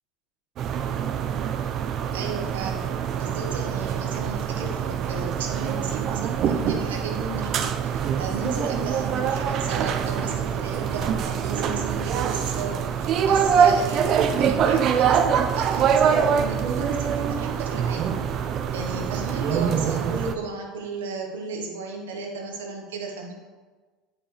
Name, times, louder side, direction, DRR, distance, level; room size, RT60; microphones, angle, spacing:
sound 1, 0.6-20.3, right 7 dB, 50° right, 0.5 m, -24 dB
voice 1, 2.1-18.1 18.7-23.3, right 3 dB, 90° right, 1 dB, 1.2 m, -34 dB
8.8 x 4.8 x 3.3 m, 1.4 s
hypercardioid pair, 90°, 0 cm